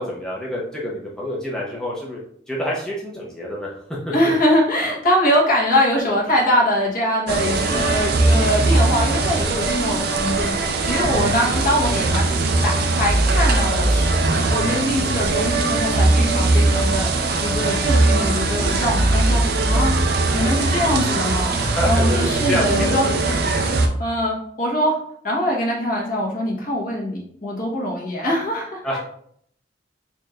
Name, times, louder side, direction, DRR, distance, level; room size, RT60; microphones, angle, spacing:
voice 1, 0.0-2.2 2.5-3.8 4.1-4.2 21.6-23.8 28.8-29.0, equal, 5° left, -5 dB, 0.6 m, -28 dB
voice 2, 4.1-12.2 12.6-19.9 20.3-23.1 24.0-25.0 25.2-29.0, equal, 50° left, -2 dB, 1.1 m, -23 dB
sound 1, 7.3-23.9, right 2 dB, 55° right, 0.5 m, -20 dB
4.2 x 3.1 x 2.4 m, 0.65 s
head